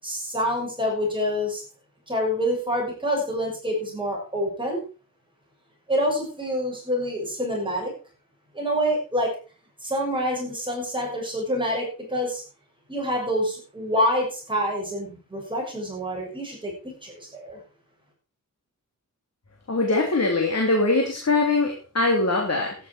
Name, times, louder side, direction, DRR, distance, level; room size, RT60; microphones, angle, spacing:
voice 1, 0.0-1.6 2.1-4.8 5.9-7.9 8.5-9.3 9.8-12.4 12.9-17.6, equal, 15° right, -2 dB, 6.7 m, -27 dB
voice 2, 19.7-22.7, left 3 dB, 50° left, 0 dB, 3.3 m, -22 dB
13.5 x 11.0 x 4.6 m, 0.36 s
wide cardioid pair, 125°, 33 cm